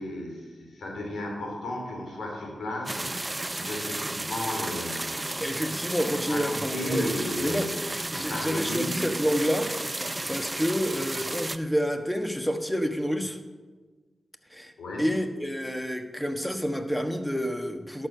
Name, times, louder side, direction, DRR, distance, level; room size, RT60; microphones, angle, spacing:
voice 1, 0.0-5.4 6.3-7.7 8.1-9.1 14.8-15.1, left 1 dB, 85° left, 0 dB, 3.0 m, -34 dB
sound 1, 2.9-11.6, right 2 dB, 25° right, 0.5 m, -33 dB
voice 2, 5.4-7.1 7.4-7.7 8.1-9.7 10.3-13.4 14.5-14.7 15.0-18.1, equal, 5° left, 6 dB, 1.2 m, -28 dB
11.5 x 6.6 x 6.6 m, 1.4 s
cardioid pair, 50°, 0 cm